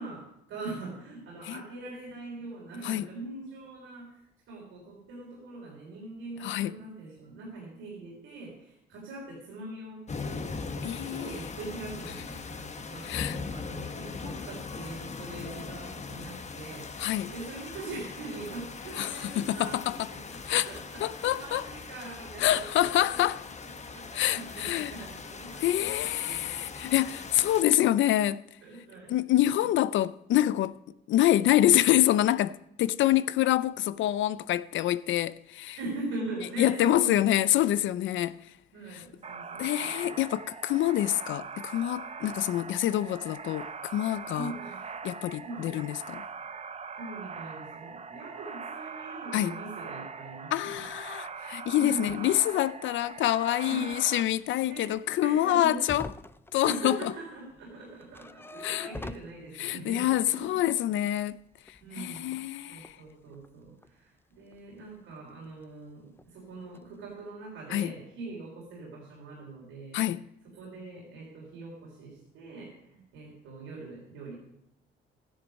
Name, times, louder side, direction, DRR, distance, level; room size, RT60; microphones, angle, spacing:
voice 1, 0.0-16.9 17.3-20.4 20.7-23.2 23.6-26.6 28.6-29.1 35.8-37.3 37.7-37.8 38.7-40.2 44.4-44.8 45.4-45.9 47.0-50.8 51.8-52.2 53.7-53.9 54.6-54.9 55.2-55.8 56.7-60.6 61.8-62.4 62.7-70.0 70.5-74.3, right 2 dB, 90° right, 3.8 m, -42 dB
voice 2, 6.4-6.8 10.8-11.4 13.0-13.4 17.0-17.3 19.0-20.1 20.5-20.7 21.0-21.6 22.4-23.4 24.1-24.9 25.6-28.4 29.1-30.8 31.1-35.8 36.6-38.4 38.9-39.0 39.6-44.5 45.0-46.2 49.3-49.6 50.5-56.1 56.5-57.1 58.6-58.9 59.6-61.4 62.0-62.9 67.7-67.9 69.9-70.2, left 13 dB, 75° left, 0.5 m, -26 dB
sound 1, 10.1-27.6, left 4 dB, 35° left, 1.1 m, -40 dB
sound 2, 39.2-54.2, right 5 dB, 30° right, 0.9 m, -42 dB
sound 3, 50.9-51.0 51.7-51.8 52.1-52.7 53.0-53.1 53.4-53.5 53.9-54.1 54.4-57.2 57.5-59.9 60.4-62.5 62.8-63.9 64.4-65.1 65.4-65.9 66.2-66.5 66.7-67.1, left 2 dB, 10° left, 0.5 m, -46 dB
13.0 x 10.5 x 5.3 m
cardioid pair, 90°, 20 cm